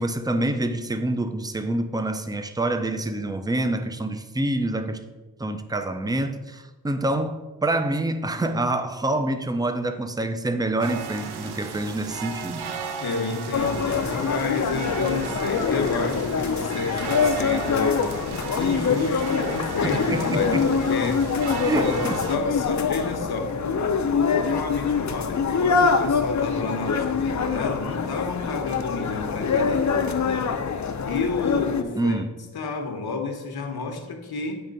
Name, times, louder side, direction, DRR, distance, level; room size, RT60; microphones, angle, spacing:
voice 1, 0.0-5.0 5.4-12.7 19.8-20.7 21.6-22.2 32.0-32.4, right 1 dB, 10° right, 0.4 m, -26 dB
sound 1, 10.8-22.4, right 6 dB, 85° right, 0.7 m, -35 dB
voice 2, 13.0-18.2 18.6-21.2 21.7-21.9 22.3-30.5 31.0-32.2 32.5-34.6, left 4 dB, 75° left, 1.0 m, -30 dB
sound 2, 13.5-31.8, left 5 dB, 50° left, 0.5 m, -25 dB
8.7 x 3.3 x 5.2 m
wide cardioid pair, 125°, 38 cm